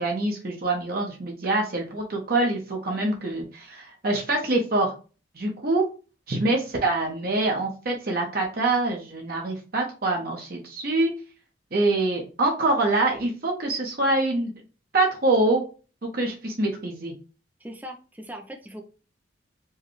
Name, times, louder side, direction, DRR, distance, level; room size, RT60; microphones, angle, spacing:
voice 1, 0.0-4.9 5.3-5.8 6.3-11.1 11.7-14.5 14.9-15.6 16.1-17.1, right 2 dB, 50° right, 0 dB, 0.8 m, -25 dB
voice 2, 17.6-18.8, equal, 10° right, 3 dB, 0.5 m, -39 dB
4.5 x 2.2 x 3.1 m, 0.34 s
head